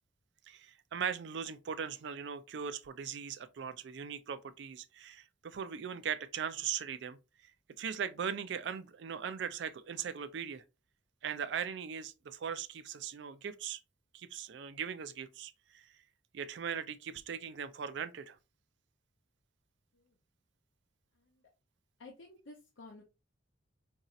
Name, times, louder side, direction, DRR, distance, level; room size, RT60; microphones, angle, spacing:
voice 1, 0.5-7.2 7.8-10.6 11.2-13.8 14.1-15.9 16.3-18.4, right 7 dB, 65° right, 0.4 m, -39 dB
voice 2, 21.1-21.5 22.0-23.0, left 2 dB, 80° left, 0.7 m, -54 dB
4.0 x 2.7 x 2.4 m
head